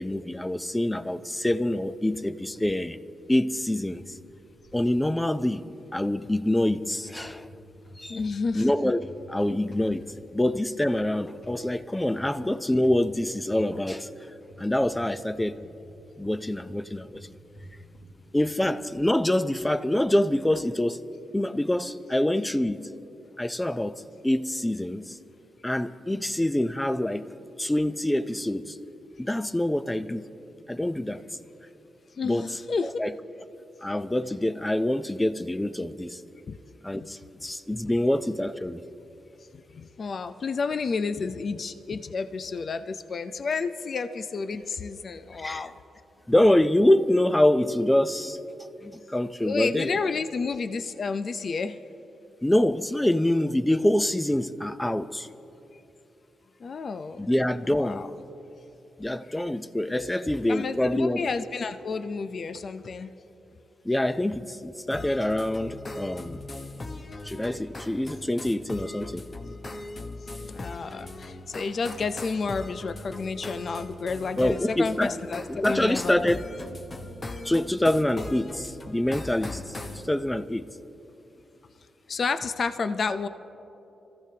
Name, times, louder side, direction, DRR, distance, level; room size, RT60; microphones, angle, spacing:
voice 1, 0.0-3.0 3.3-4.0 4.7-5.6 5.9-7.5 8.0-8.2 8.5-9.0 9.3-14.1 14.6-15.5 16.2-17.2 18.3-21.0 21.3-22.9 23.4-25.2 25.6-27.3 27.6-28.8 29.2-30.2 30.7-31.2 32.2-32.5 32.8-33.1 33.8-36.2 36.8-38.8 45.4-45.7 46.3-48.4 48.8-49.9 52.4-55.3 57.2-58.0 59.0-61.3 63.8-66.5 67.2-69.3 74.4-75.1 75.5-76.4 77.4-80.7, left 1 dB, 10° left, 0.6 m, -25 dB
sound 1, 1.4-1.9 2.2-2.7 3.9-4.9 6.2-7.2 7.4-10.4 11.4-11.6 12.1-12.4 12.8-13.1 13.5-13.7 14.5-16.0 16.2-18.1, equal, 70° left, 3.5 m, -48 dB
voice 2, 8.1-8.7 32.2-33.0 36.5-36.6 39.7-45.8 49.4-51.8 56.6-57.2 57.6-58.1 60.5-63.1 70.4-76.2 82.1-83.3, left 4 dB, 55° left, 0.6 m, -30 dB
sound 2, 64.9-80.1, left 2 dB, 35° left, 1.0 m, -39 dB
27.0 x 15.0 x 2.9 m
cardioid pair, 75°, 0 cm